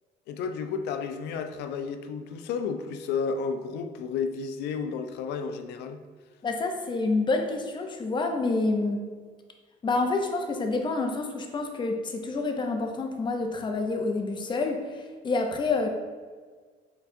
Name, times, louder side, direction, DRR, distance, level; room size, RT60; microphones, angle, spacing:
voice 1, 0.3-6.0, left 5 dB, 80° left, 0.4 m, -32 dB
voice 2, 6.4-9.0 9.8-15.9, left 3 dB, 25° left, 0.6 m, -28 dB
4.7 x 3.8 x 2.6 m
cardioid pair, 110°, 17 cm